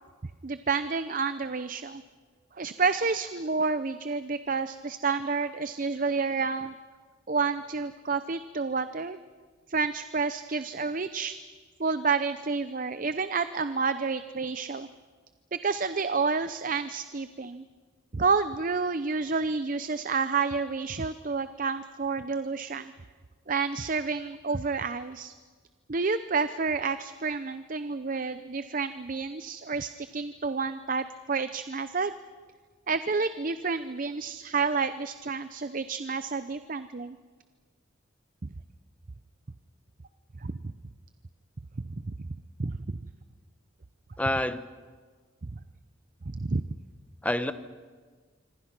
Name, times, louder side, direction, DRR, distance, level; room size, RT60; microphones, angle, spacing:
voice 1, 0.4-2.0 2.6-6.7 7.3-9.2 9.7-11.4 11.8-14.9 15.5-17.6 18.1-22.9 23.5-25.3 25.9-32.1 32.9-37.2 40.4-40.7 41.9-42.1 42.6-43.0 46.3-46.6, right 4 dB, 45° right, 12 dB, 0.6 m, -29 dB
voice 2, 44.2-44.6 47.2-47.5, left 1 dB, 5° left, 11 dB, 0.9 m, -27 dB
26.5 x 25.5 x 6.0 m, 1.5 s
head